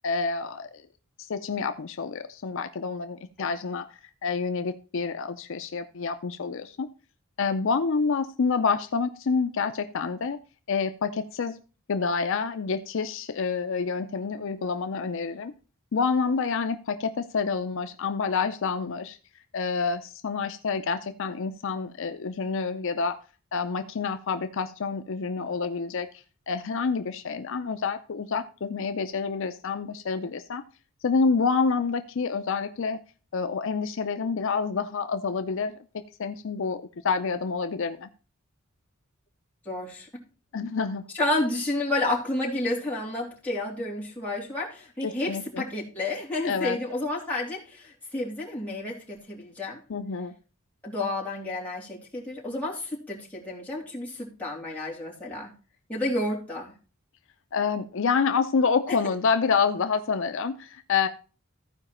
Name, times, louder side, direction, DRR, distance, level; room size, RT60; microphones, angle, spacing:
voice 1, 0.0-0.8 1.2-6.9 7.4-10.4 10.7-11.6 11.9-15.5 15.9-19.2 19.5-23.2 23.5-26.1 26.5-30.6 31.0-33.0 33.3-38.1 40.5-41.1 45.0-45.6 46.4-46.8 49.9-50.3 57.5-61.1, left 5 dB, 65° left, 9 dB, 0.5 m, -28 dB
voice 2, 39.6-40.1 41.1-49.8 50.8-55.5 55.9-56.7 58.9-59.0, left 2 dB, 5° left, -6 dB, 3.0 m, -30 dB
14.5 x 4.9 x 4.3 m, 0.35 s
head